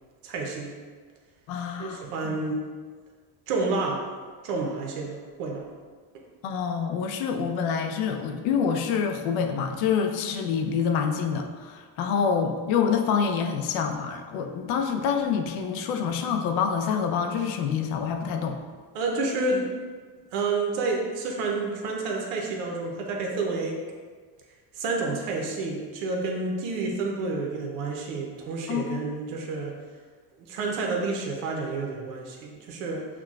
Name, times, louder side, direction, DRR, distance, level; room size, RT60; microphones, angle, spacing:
voice 1, 0.2-0.7 1.8-2.6 3.5-4.1 4.4-5.7 18.9-19.6 20.3-23.8 24.8-29.7 30.5-33.1, right 3 dB, 80° right, 0 dB, 0.8 m, -29 dB
voice 2, 1.5-2.0 6.4-18.6 28.7-29.0, left 6 dB, 70° left, 5 dB, 0.6 m, -26 dB
5.8 x 2.2 x 2.4 m, 1.5 s
supercardioid pair, 90°, 49 cm